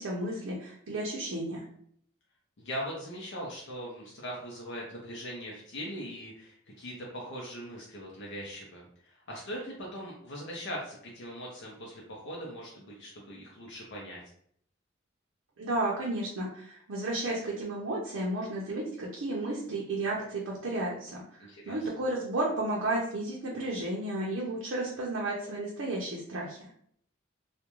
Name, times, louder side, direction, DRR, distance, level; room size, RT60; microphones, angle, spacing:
voice 1, 0.0-1.6 15.6-26.6, right 2 dB, 85° right, -4 dB, 0.6 m, -33 dB
voice 2, 2.6-14.2 21.4-21.8, equal, 65° left, -2 dB, 0.6 m, -40 dB
2.4 x 2.1 x 2.9 m, 0.66 s
head